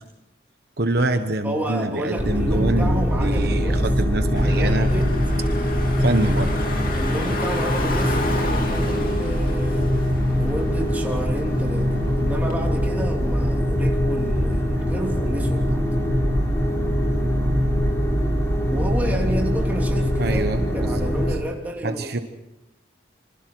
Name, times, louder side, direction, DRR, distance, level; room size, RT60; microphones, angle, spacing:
voice 1, 0.8-4.9 6.0-6.5 20.2-21.1 21.8-22.2, right 2 dB, 55° right, 7 dB, 1.2 m, -25 dB
voice 2, 1.4-3.9 4.3-5.2 6.9-9.9 10.3-15.8 18.7-22.2, right 1 dB, 10° right, 0 dB, 3.1 m, -31 dB
sound 1, 2.2-21.3, equal, 15° left, 4.5 m, -22 dB
Car / Engine, 4.3-12.5, left 2 dB, 45° left, 3.0 m, -32 dB
28.0 x 25.0 x 4.7 m, 0.96 s
head